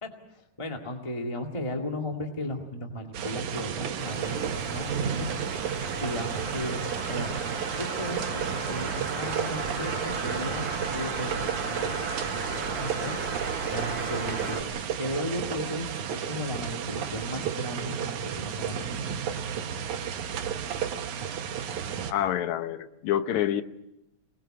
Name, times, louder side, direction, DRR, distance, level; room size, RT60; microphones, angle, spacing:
voice 1, 0.0-5.1 5.5-7.4 7.7-12.2 12.8-13.2 13.4-19.0, left 1 dB, 15° left, 2 dB, 1.5 m, -36 dB
sound 1, 3.1-22.1, right 8 dB, 75° right, 2.7 m, -33 dB
sound 2, 4.0-14.6, right 3 dB, 50° right, 4.9 m, -35 dB
voice 2, 22.1-23.6, left 11 dB, 75° left, 10 dB, 2.3 m, -27 dB
26.0 x 20.5 x 7.7 m, 0.87 s
omnidirectional pair, 3.4 m